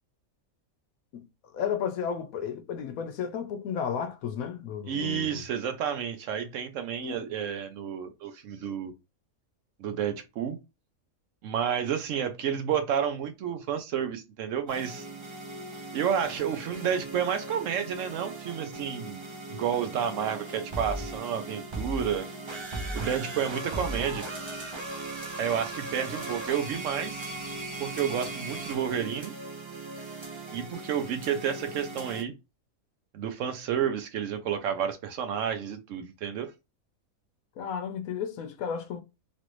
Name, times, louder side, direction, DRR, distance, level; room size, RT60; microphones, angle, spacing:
voice 1, 1.5-5.5 7.0-7.4 37.6-39.0, left 7 dB, 80° left, 1.1 m, -33 dB
voice 2, 4.9-8.9 9.8-10.6 11.4-15.1 15.9-22.3 22.9-24.3 25.4-27.3 27.8-29.3 30.5-32.3 33.1-36.5, right 8 dB, 70° right, 0.8 m, -30 dB
sound 1, 14.7-32.2, right 2 dB, 35° right, 0.4 m, -38 dB
3.1 x 2.5 x 3.0 m
omnidirectional pair, 1.5 m